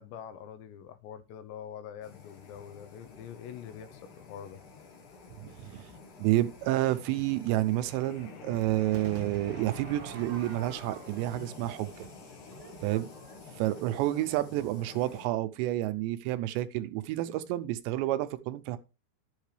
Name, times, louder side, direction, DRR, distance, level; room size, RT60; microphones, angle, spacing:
voice 1, 0.0-4.6, left 9 dB, 80° left, 3.1 m, -45 dB
sound 1, 2.0-15.3, left 5 dB, 55° left, 1.9 m, -49 dB
voice 2, 5.4-5.9 6.2-11.9 12.8-13.1 13.6-18.8, right 15 dB, 85° right, 2.9 m, -30 dB
Crowd / Fireworks, 8.9-14.2, right 6 dB, 65° right, 1.5 m, -47 dB
12.0 x 8.2 x 3.3 m
omnidirectional pair, 5.1 m